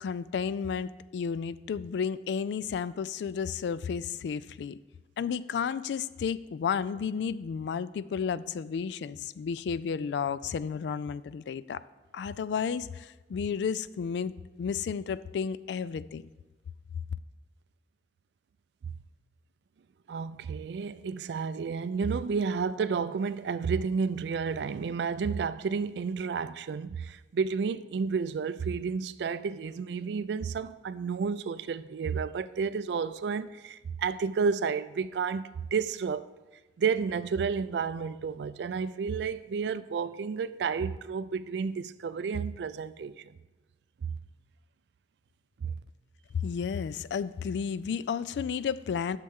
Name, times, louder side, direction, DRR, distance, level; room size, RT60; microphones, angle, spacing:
voice 1, 0.0-4.8 5.2-11.8 12.1-14.3 14.6-16.2 46.4-49.2, left 6 dB, 70° left, 0.3 m, -32 dB
voice 2, 20.1-36.3 36.8-43.3 44.0-44.2 45.6-45.8, right 5 dB, 70° right, 0.3 m, -31 dB
10.5 x 6.7 x 3.6 m
head